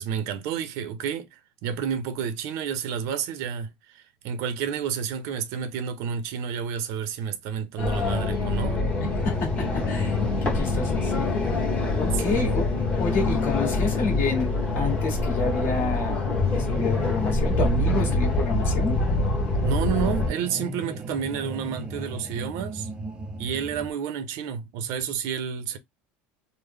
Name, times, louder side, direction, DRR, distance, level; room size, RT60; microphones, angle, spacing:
voice 1, 0.0-8.8 12.3-12.5 19.6-22.9 23.4-25.8, right 8 dB, 65° right, 0.6 m, -30 dB
sound 1, 7.8-20.3, left 2 dB, 20° left, 1.1 m, -25 dB
sound 2, 8.9-23.9, equal, 15° right, 0.5 m, -37 dB
voice 2, 9.0-11.3 11.9-12.7 13.0-16.2 16.5-19.0, left 4 dB, 40° left, 1.5 m, -29 dB
3.3 x 2.1 x 3.6 m
cardioid pair, 150°, 6 cm